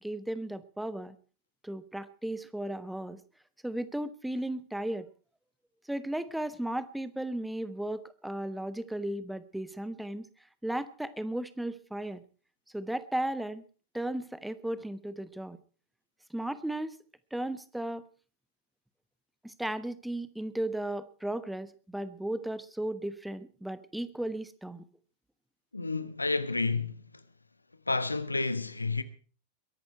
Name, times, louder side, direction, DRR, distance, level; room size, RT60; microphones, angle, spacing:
voice 1, 0.0-1.1 1.6-3.2 3.6-5.1 5.9-10.3 10.6-12.2 12.7-13.6 13.9-15.6 16.3-17.0 17.3-18.1 19.4-24.8, right 1 dB, 5° right, 1.2 m, -35 dB
voice 2, 25.7-27.0 27.9-29.0, left 3 dB, 80° left, 1.1 m, -30 dB
22.5 x 11.0 x 4.5 m
figure-of-eight pair, 90°, 0 cm